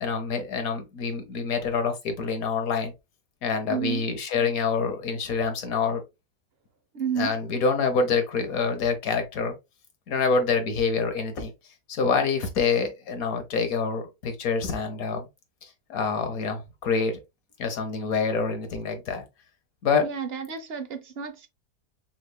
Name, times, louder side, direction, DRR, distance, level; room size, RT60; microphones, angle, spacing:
voice 1, 0.0-2.9 3.4-6.0 7.1-9.5 10.1-11.5 11.9-15.3 15.6-17.2 17.6-19.2 19.8-20.1 21.1-21.2, left 5 dB, 60° left, 1.4 m, -26 dB
voice 2, 3.7-4.1 6.9-7.3 20.0-21.5, right 6 dB, 55° right, 0.7 m, -31 dB
5.7 x 3.2 x 2.2 m
omnidirectional pair, 1.7 m